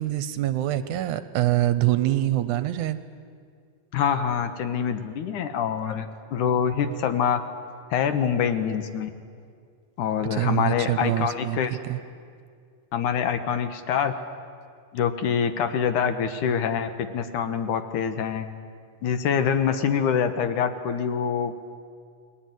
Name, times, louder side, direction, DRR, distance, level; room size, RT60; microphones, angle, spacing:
voice 1, 0.0-3.0 10.3-12.0, right 14 dB, 75° right, 13 dB, 2.1 m, -25 dB
voice 2, 3.9-7.4 7.9-9.1 10.0-11.8 12.9-14.1 14.9-18.5 19.0-21.5, left 7 dB, 70° left, 9 dB, 2.6 m, -25 dB
30.0 x 20.5 x 9.4 m, 2.2 s
omnidirectional pair, 3.9 m